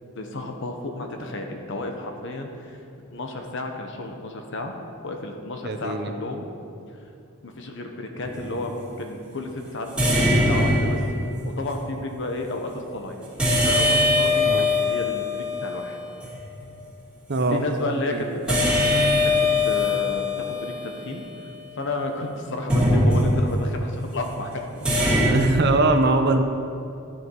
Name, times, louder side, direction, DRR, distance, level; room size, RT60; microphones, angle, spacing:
voice 1, 0.1-2.8 3.1-4.7 5.0-6.5 7.4-11.0 11.4-13.3 13.6-16.0 17.5-18.8 19.2-21.2 21.8-24.7, left 2 dB, 65° left, 4 dB, 1.1 m, -32 dB
voice 2, 5.6-6.1 14.4-14.7 17.3-17.6 18.1-18.2 25.3-26.4, right 2 dB, 55° right, 7 dB, 0.8 m, -21 dB
sound 1, 8.2-8.6 10.0-11.5 13.4-16.4 18.5-21.9 22.7-23.7 24.8-25.3, left 1 dB, 5° right, 2.4 m, -22 dB
11.5 x 8.0 x 4.7 m, 2.6 s
head